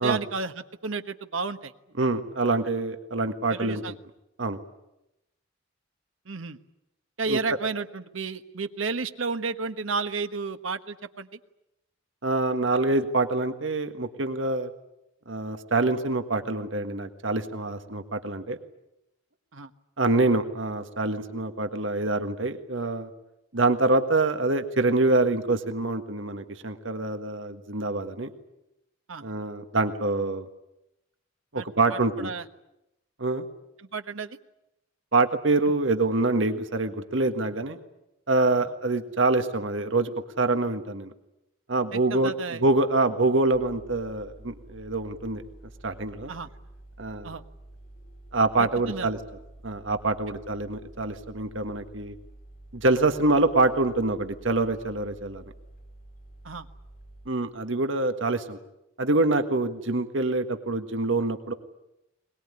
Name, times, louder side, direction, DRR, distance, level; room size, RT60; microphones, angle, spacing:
voice 1, 0.0-1.7 3.5-3.9 6.3-6.6 7.2-11.3 19.5-19.7 29.1-29.3 31.6-32.4 33.9-34.4 41.9-42.6 46.3-46.5 47.2-47.4 48.6-49.1 56.4-56.6, right 4 dB, 85° right, 9 dB, 1.3 m, -32 dB
voice 2, 2.0-3.8 4.4-4.6 7.3-7.4 12.2-14.7 15.3-18.6 20.0-23.1 23.5-28.3 29.2-30.4 31.5-32.3 33.2-33.4 35.1-37.8 38.3-40.1 40.4-41.1 41.7-42.3 42.6-45.4 45.8-46.3 47.0-47.3 48.3-49.2 49.6-52.1 52.7-55.4 57.3-58.6 59.0-61.5, right 2 dB, 70° right, 7 dB, 1.7 m, -25 dB
sound 1, 43.5-57.3, right 1 dB, 45° left, 3.9 m, -49 dB
22.0 x 21.0 x 9.8 m, 0.88 s
head